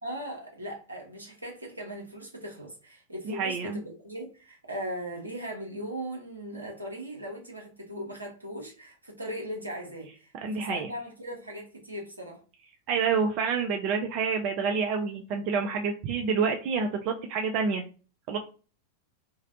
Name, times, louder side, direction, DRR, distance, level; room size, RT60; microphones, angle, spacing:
voice 1, 0.0-12.4, equal, 80° right, -1 dB, 0.8 m, -39 dB
voice 2, 3.3-3.8 10.4-10.9 12.9-17.8 18.3-18.4, right 5 dB, 40° right, 4 dB, 0.3 m, -28 dB
2.5 x 2.1 x 2.5 m, 0.36 s
figure-of-eight pair, 90°, 0 cm